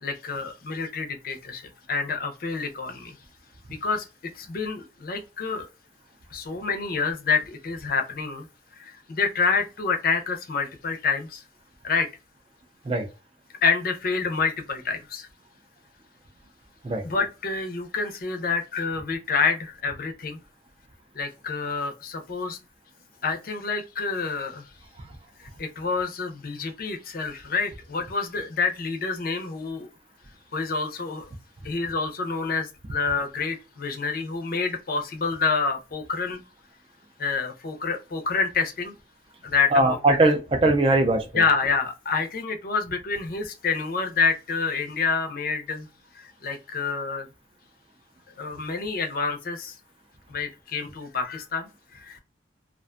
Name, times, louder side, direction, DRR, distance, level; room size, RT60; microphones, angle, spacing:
voice 1, 0.0-3.2 3.7-4.1 4.3-5.7 6.3-8.5 8.7-11.4 11.8-12.1 13.6-15.3 17.0-20.4 21.1-22.6 23.2-24.7 25.4-29.9 30.5-31.3 31.6-36.4 37.2-38.9 39.4-40.0 41.3-45.9 46.1-47.3 48.4-49.8 50.3-52.2, left 4 dB, 55° left, 0.5 m, -28 dB
voice 2, 39.7-41.3, right 2 dB, 30° right, 0.4 m, -20 dB
2.4 x 2.2 x 2.4 m
head